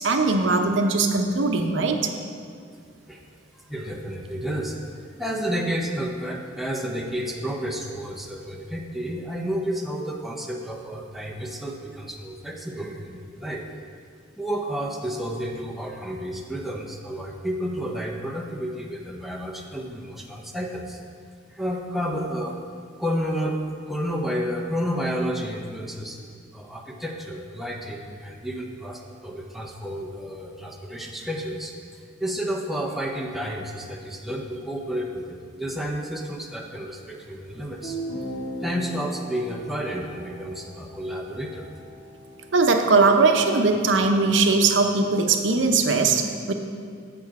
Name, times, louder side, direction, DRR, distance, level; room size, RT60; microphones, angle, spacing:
voice 1, 0.0-2.1 42.5-46.5, right 3 dB, 75° right, 4 dB, 0.7 m, -20 dB
voice 2, 3.5-13.7 14.4-21.0 21.5-22.6 23.0-23.6 23.9-26.2 26.5-38.0 38.6-41.7, equal, ahead, 0 dB, 0.6 m, -31 dB
sound 1, 37.8-43.2, right 1 dB, 85° left, 1.6 m, -38 dB
7.4 x 6.9 x 4.7 m, 2.1 s
head